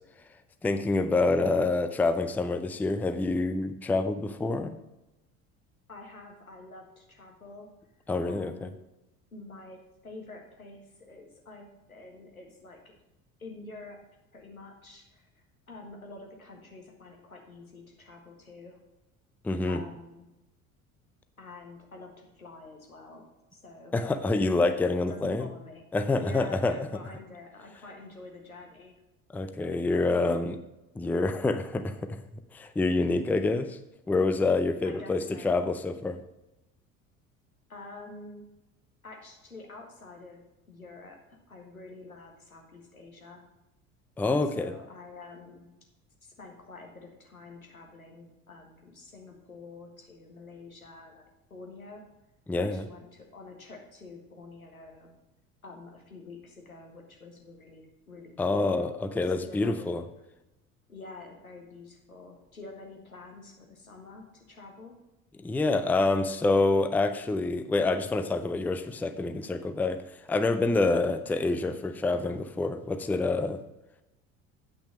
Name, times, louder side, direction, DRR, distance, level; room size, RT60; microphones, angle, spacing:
voice 1, 0.6-4.8 8.1-8.7 19.4-19.8 23.9-25.5 25.9-26.7 29.3-30.6 31.0-32.2 32.5-33.8 34.1-36.2 44.2-44.7 52.5-52.8 58.4-60.0 65.4-70.0 70.3-73.6, left 3 dB, 5° left, 10 dB, 0.5 m, -27 dB
voice 2, 5.9-7.7 8.2-8.8 9.3-12.9 13.4-14.0 14.3-18.8 19.6-20.3 21.4-23.9 25.0-25.8 26.1-28.9 34.8-35.6 37.7-38.4 39.0-40.4 40.7-43.4 44.5-45.7 46.2-51.2 51.5-52.0 52.6-55.1 55.6-59.2 59.4-59.9 60.9-65.0, left 3 dB, 85° left, 1 dB, 1.5 m, -47 dB
8.4 x 6.1 x 6.3 m, 0.97 s
figure-of-eight pair, 60°, 41 cm